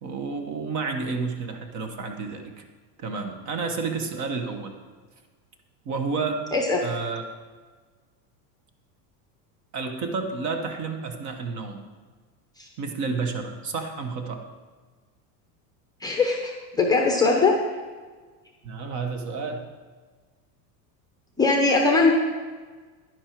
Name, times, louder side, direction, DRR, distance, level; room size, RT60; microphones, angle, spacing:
voice 1, 0.0-2.6 3.0-4.8 5.8-6.4 6.8-7.2 9.7-11.9 12.8-14.4 18.6-19.7, right 4 dB, 35° right, 5 dB, 1.2 m, -30 dB
voice 2, 6.5-6.8 12.6-12.7 16.0-17.5 21.4-22.1, left 3 dB, 10° left, 1 dB, 0.7 m, -21 dB
10.5 x 10.5 x 4.5 m, 1.4 s
cardioid pair, 165°, 48 cm